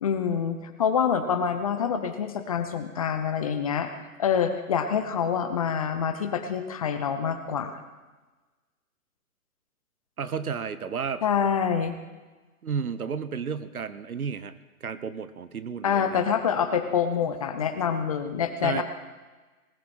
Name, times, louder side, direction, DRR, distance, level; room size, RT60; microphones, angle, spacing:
voice 1, 0.0-3.9 4.2-7.7 11.2-11.9 15.8-18.8, left 7 dB, 25° left, 8 dB, 0.7 m, -26 dB
voice 2, 10.2-11.2 12.6-16.2 17.6-17.7 18.6-18.8, right 6 dB, 70° right, 13 dB, 1.2 m, -32 dB
19.5 x 15.0 x 4.4 m, 1.3 s
figure-of-eight pair, 145°, 45 cm